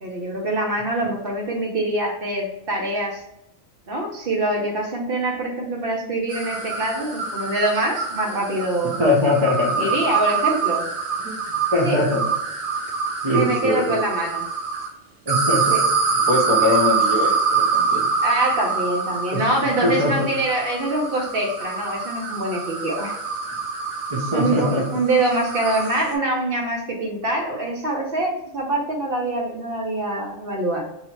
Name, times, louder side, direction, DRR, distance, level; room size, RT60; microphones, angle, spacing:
voice 1, 0.0-3.2 3.9-9.0 9.8-10.8 11.8-12.0 13.3-14.4 15.7-15.8 18.2-23.2 24.3-30.8, right 1 dB, 50° right, -1 dB, 0.9 m, -24 dB
sound 1, 6.3-14.9 15.3-26.1, right 5 dB, 80° right, 1.4 m, -25 dB
voice 2, 9.0-10.0 11.2-11.4 11.7-12.2 13.2-14.0 15.3-15.8 16.3-18.0 19.3-20.3 24.1-24.9, left 2 dB, 35° right, -1 dB, 0.5 m, -22 dB
2.8 x 2.8 x 4.3 m, 0.83 s
omnidirectional pair, 1.4 m